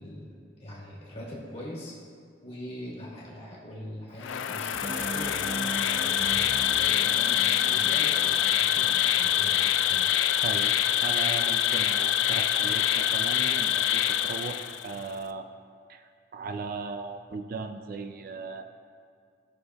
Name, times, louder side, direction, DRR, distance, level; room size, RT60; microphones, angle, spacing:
voice 1, 0.0-2.0 2.4-10.1, left 1 dB, 30° left, -4 dB, 1.5 m, -42 dB
Insect, 4.2-15.0, left 11 dB, 90° left, 0.3 m, -25 dB
sound 1, 4.7-8.9, right 2 dB, 70° right, 1.0 m, -39 dB
voice 2, 10.4-10.8 11.0-15.5 15.9-18.7, right 4 dB, 50° right, 8 dB, 0.3 m, -37 dB
13.5 x 6.4 x 2.3 m, 2.2 s
head